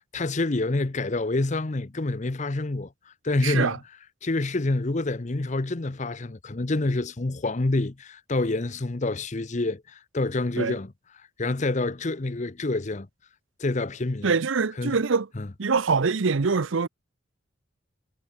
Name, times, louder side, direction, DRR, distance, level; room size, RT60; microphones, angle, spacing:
voice 1, 0.0-3.8 4.2-10.9 11.4-13.1 13.6-14.3 14.8-15.0 15.4-15.5, left 2 dB, 35° left, 0.7 m, -27 dB
voice 2, 3.4-3.8 10.6-10.8 14.2-15.3 15.6-16.9, right 5 dB, 75° right, 0.7 m, -24 dB
head